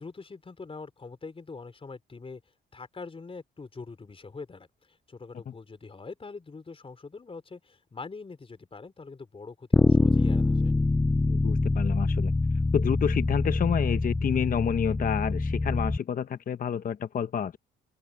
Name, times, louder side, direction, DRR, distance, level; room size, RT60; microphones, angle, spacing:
voice 1, 0.0-2.4 2.7-10.7, left 4 dB, 30° left, 4.2 m, -43 dB
Bass guitar, 9.7-16.0, left 3 dB, 10° left, 0.3 m, -25 dB
voice 2, 11.3-12.3 12.7-17.6, left 8 dB, 45° left, 0.8 m, -29 dB
open air
cardioid pair, 90°, 20 cm